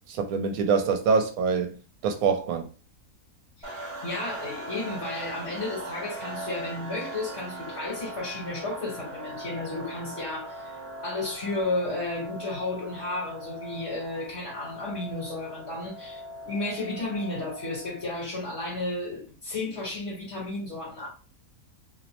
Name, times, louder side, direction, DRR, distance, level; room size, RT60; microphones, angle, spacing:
voice 1, 0.1-1.7 2.0-2.7, right 5 dB, 75° right, 1.0 m, -24 dB
voice 2, 3.6-21.1, left 2 dB, 55° left, 1.3 m, -33 dB
sound 1, 3.6-18.2, right 1 dB, 25° right, 0.9 m, -40 dB
2.7 x 2.0 x 2.9 m
omnidirectional pair, 1.6 m